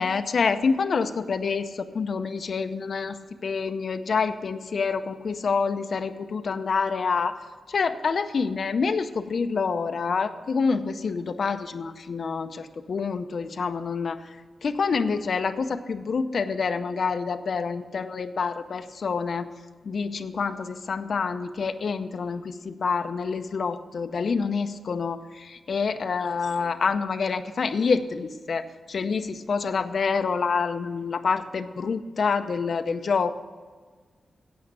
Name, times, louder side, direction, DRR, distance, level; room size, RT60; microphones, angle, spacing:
voice 1, 0.0-3.2 3.4-7.4 7.7-14.2 14.6-19.5 19.8-33.3, left 5 dB, 65° left, 9 dB, 0.6 m, -27 dB
8.7 x 8.6 x 8.1 m, 1.5 s
cardioid pair, 85°, 0 cm